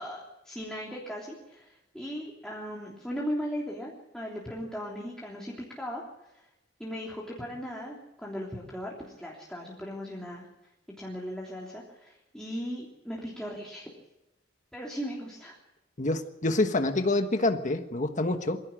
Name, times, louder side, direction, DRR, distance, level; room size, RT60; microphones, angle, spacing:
voice 1, 0.0-6.0 6.3-6.5 6.8-10.5 11.0-13.9 14.7-15.6, equal, 5° left, -4 dB, 3.3 m, -38 dB
voice 2, 16.0-18.6, left 2 dB, 45° left, 6 dB, 1.4 m, -27 dB
23.5 x 16.5 x 8.9 m, 0.94 s
head